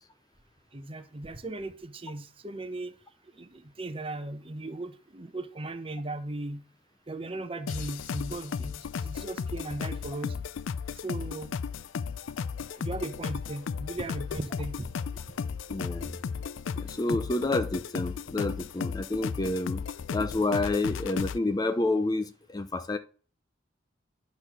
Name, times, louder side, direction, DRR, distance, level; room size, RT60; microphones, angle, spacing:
voice 1, 0.7-2.9 3.4-6.6 7.1-10.3 11.0-11.5 12.7-14.9, right 2 dB, 30° right, 0.8 m, -37 dB
sound 1, 7.7-21.4, left 6 dB, 90° left, 0.4 m, -35 dB
voice 2, 15.7-16.2 16.8-19.8 20.1-23.0, left 2 dB, 20° left, 0.5 m, -29 dB
11.0 x 4.1 x 6.1 m
head